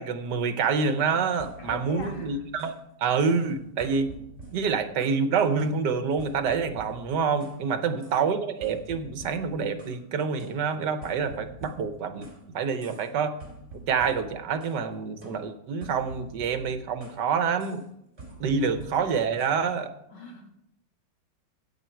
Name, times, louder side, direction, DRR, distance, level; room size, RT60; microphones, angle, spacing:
voice 1, 0.0-2.7 3.0-4.1 4.5-12.3 12.5-13.3 13.9-17.8 18.4-19.9, right 5 dB, 75° right, 9 dB, 1.6 m, -27 dB
sound 1, 0.8-2.9 3.2-3.5 3.8-5.3 5.6-7.6 8.0-8.2 8.6-10.0 10.4-12.4 12.8-13.1 13.4-14.8 15.2-17.3 17.6-17.9 18.2-19.6, right 2 dB, 35° right, 4.8 m, -47 dB
voice 2, 1.6-2.4 7.7-8.3 18.3-19.0 20.1-20.5, left 3 dB, 80° left, 1 dB, 2.6 m, -44 dB
13.5 x 8.5 x 4.6 m, 0.78 s
omnidirectional pair, 1.9 m